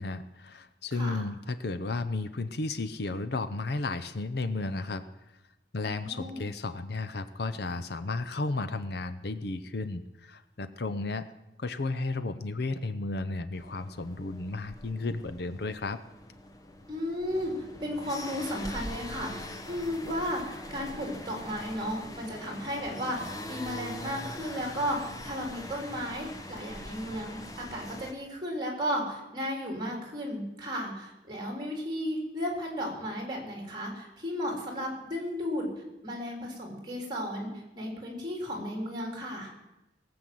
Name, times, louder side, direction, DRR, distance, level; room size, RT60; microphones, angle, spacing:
voice 1, 0.0-5.0 5.7-11.3 11.6-16.0, left 3 dB, 60° left, 12 dB, 0.7 m, -33 dB
voice 2, 0.9-1.2 5.8-6.5 16.9-17.5 17.8-35.7 36.0-39.5, equal, 25° right, 1 dB, 3.6 m, -34 dB
sound 1, 13.5-28.1, left 1 dB, 20° left, 1.1 m, -43 dB
18.5 x 7.8 x 7.7 m, 0.96 s
head